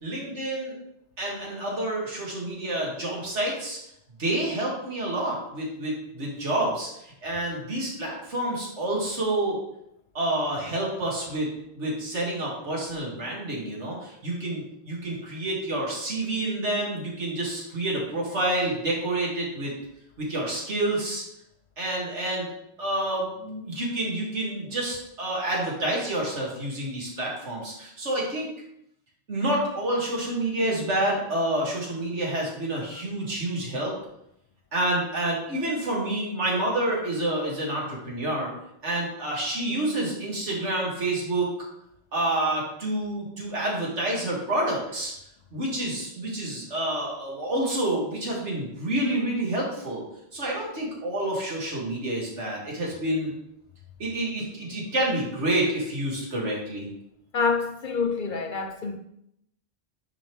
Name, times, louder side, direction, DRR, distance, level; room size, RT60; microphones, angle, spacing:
voice 1, 0.0-0.7 1.2-3.8 4.2-9.6 10.1-11.5 11.7-19.7 20.2-21.2 21.8-22.5 22.8-28.5 29.3-33.9 34.7-38.5 38.8-41.5 42.1-45.1 45.5-50.0 50.3-53.3 54.0-56.9, right 1 dB, 85° right, 2.1 m, -28 dB
voice 2, 57.3-59.0, left 4 dB, 55° left, 0.6 m, -27 dB
9.5 x 3.5 x 3.1 m
omnidirectional pair, 1.2 m